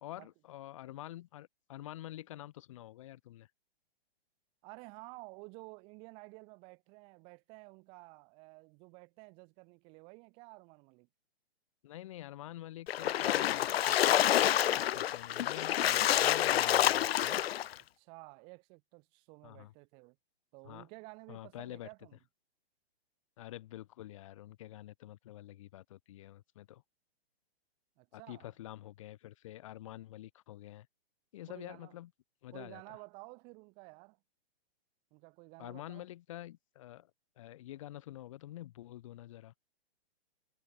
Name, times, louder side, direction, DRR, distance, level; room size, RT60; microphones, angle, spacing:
voice 1, 0.0-3.5 11.8-17.4 19.4-19.7 20.6-20.9 21.3-21.9 23.4-26.8 28.1-30.9 31.3-32.1 32.4-33.0 35.6-37.1 37.4-39.5, left 14 dB, 30° left, 1.4 m, -48 dB
voice 2, 4.6-11.1 18.0-20.2 20.5-22.2 28.0-28.5 31.5-31.9 32.5-34.2 35.1-36.0, right 31 dB, 15° right, 1.3 m, -52 dB
Splash splatter, 12.9-17.7, left 12 dB, 70° left, 0.5 m, -28 dB
hypercardioid pair, 170°, 31 cm